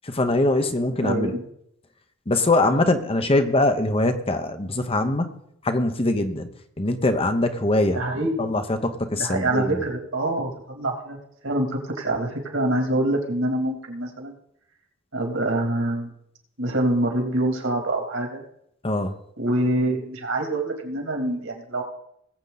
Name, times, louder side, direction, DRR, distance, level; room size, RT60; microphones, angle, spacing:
voice 1, 0.0-1.3 2.3-5.4 5.6-6.5 6.8-8.0 8.4-9.8 18.8-19.1, left 2 dB, 30° left, 8 dB, 1.0 m, -22 dB
voice 2, 1.0-1.5 7.9-8.5 9.2-11.2 11.4-14.4 15.1-16.1 16.6-18.4 19.4-21.8, right 1 dB, 70° right, 2 dB, 3.0 m, -25 dB
20.0 x 8.0 x 4.1 m, 0.73 s
head